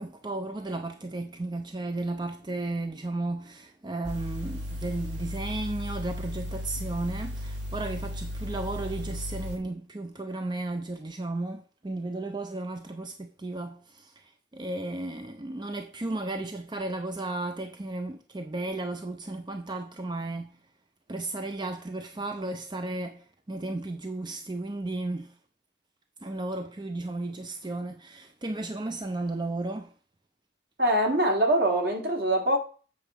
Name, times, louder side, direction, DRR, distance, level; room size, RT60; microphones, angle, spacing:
voice 1, 0.0-20.6 21.1-25.4 26.2-29.9, right 2 dB, 25° right, 0.6 m, -34 dB
sound 1, 4.0-9.6, left 1 dB, 75° right, 2.6 m, -35 dB
voice 2, 30.8-32.6, right 1 dB, 55° right, 2.2 m, -23 dB
7.8 x 4.4 x 6.8 m
head